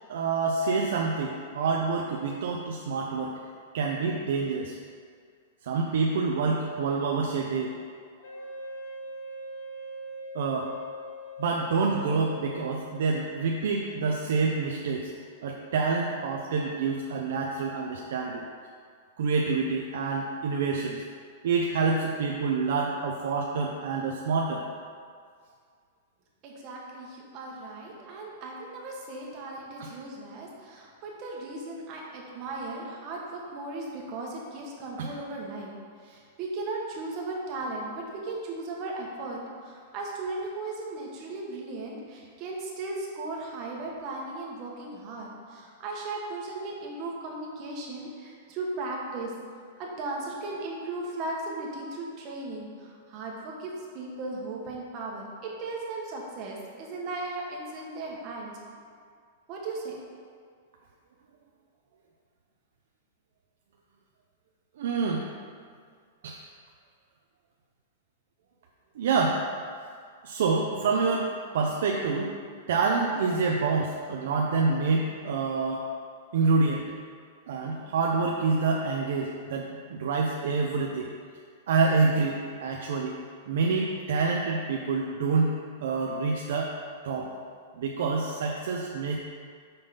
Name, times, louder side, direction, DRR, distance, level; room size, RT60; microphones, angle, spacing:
voice 1, 0.1-3.4 3.7-4.8 5.6-7.7 10.3-10.7 11.4-15.1 15.4-18.4 19.2-21.0 21.4-24.6 29.8-29.9 35.0-35.1 64.8-65.2 66.2-66.4 69.0-69.4 70.2-72.3 72.7-75.9 76.3-76.8 77.5-81.1 81.7-83.2 83.5-85.5 85.8-86.7 87.0-87.3 87.8-89.2, right 4 dB, 60° right, -1 dB, 0.6 m, -27 dB
Wind instrument woodwind instrument, 8.2-13.3, equal, 80° left, 1.5 m, -41 dB
voice 2, 26.4-35.7 36.0-49.3 49.8-58.5 59.5-60.0, right 2 dB, 30° right, -2 dB, 1.2 m, -37 dB
5.6 x 5.3 x 5.6 m, 2.1 s
supercardioid pair, 175°, 0 cm